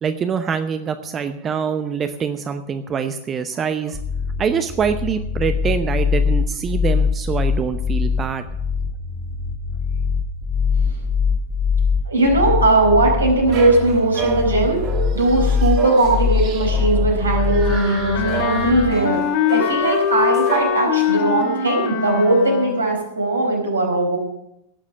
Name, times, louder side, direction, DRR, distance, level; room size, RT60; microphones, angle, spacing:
voice 1, 0.0-4.0 4.4-8.5, right 6 dB, 25° right, 9 dB, 0.8 m, -24 dB
sound 1, 3.9-18.9, left 6 dB, 10° left, 1.5 m, -22 dB
voice 2, 12.0-14.8 15.1-19.2 19.5-24.2, right 2 dB, 80° right, 0 dB, 4.7 m, -18 dB
sound 2, 13.5-21.3, right 6 dB, 40° right, 3.1 m, -31 dB
Wind instrument woodwind instrument, 17.6-22.8, left 8 dB, 45° left, 2.5 m, -22 dB
18.0 x 7.3 x 6.7 m, 0.81 s
figure-of-eight pair, 90°, 0 cm